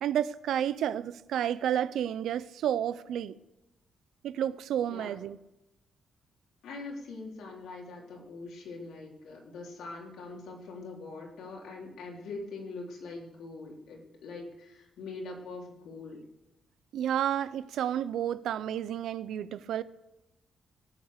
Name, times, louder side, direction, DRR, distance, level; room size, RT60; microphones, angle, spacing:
voice 1, 0.0-3.3 4.2-5.4 16.9-19.8, right 10 dB, 85° right, 0.6 m, -31 dB
voice 2, 6.6-16.2, left 3 dB, 85° left, 3.6 m, -43 dB
17.0 x 8.9 x 6.6 m
cardioid pair, 140°, 0 cm